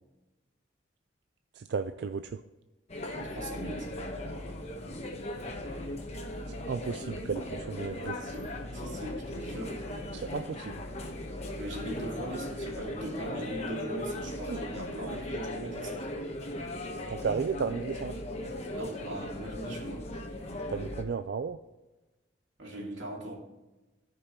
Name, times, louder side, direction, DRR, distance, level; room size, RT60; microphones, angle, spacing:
voice 1, 1.5-2.4 6.5-8.1 10.1-10.8 14.5-14.6 17.1-18.2 20.7-21.6, right 5 dB, 60° right, 9 dB, 0.4 m, -34 dB
sound 1, 2.9-21.0, left 1 dB, 35° left, 1.2 m, -38 dB
voice 2, 3.1-3.9 8.0-9.8 11.6-16.1 18.7-20.1 22.6-23.3, right 1 dB, 90° right, -1 dB, 2.6 m, -40 dB
14.0 x 5.5 x 3.0 m, 1.1 s
head